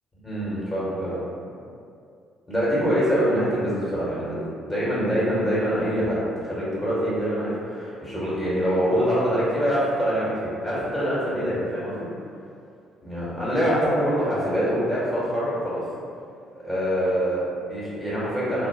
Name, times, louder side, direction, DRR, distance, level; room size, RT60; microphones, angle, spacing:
voice 1, 0.2-1.2 2.5-12.1 13.0-15.8 16.5-18.7, equal, 20° left, -9 dB, 1.0 m, -25 dB
2.2 x 2.1 x 3.4 m, 2.4 s
figure-of-eight pair, 45°, 0 cm